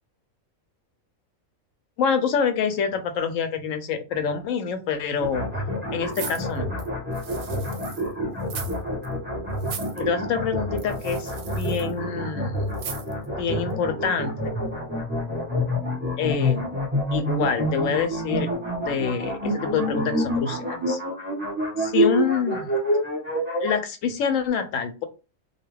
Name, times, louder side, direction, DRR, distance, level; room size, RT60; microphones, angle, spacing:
voice 1, 2.0-5.5 5.9-6.7 10.0-12.6 13.4-14.5 16.2-16.8 17.1-21.0 21.8-22.7 23.6-25.0, left 6 dB, 75° left, 8 dB, 0.9 m, -26 dB
sound 1, 5.2-23.7, equal, 10° right, 0.9 m, -27 dB
sound 2, 6.1-8.1 8.4-8.8 9.0-9.1 9.6-10.0 10.8-11.9 12.7-13.3 13.7-13.8, right 8 dB, 90° right, 1.0 m, -38 dB
2.6 x 2.3 x 3.2 m, 0.31 s
omnidirectional pair, 1.4 m